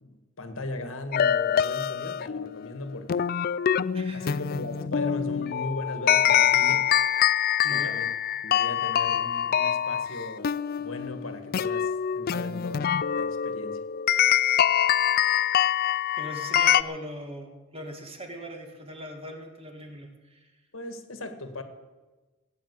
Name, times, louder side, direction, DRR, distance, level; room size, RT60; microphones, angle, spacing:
voice 1, 0.0-3.3 4.1-6.9 7.7-8.1 8.4-13.8 20.7-21.6, left 2 dB, 70° left, 8 dB, 1.7 m, -37 dB
sound 1, 1.1-16.8, left 9 dB, 45° left, 0.4 m, -25 dB
voice 2, 3.9-4.4 7.6-7.9 16.2-20.5, equal, 25° right, 4 dB, 1.9 m, -40 dB
17.0 x 9.4 x 8.2 m, 1.2 s
head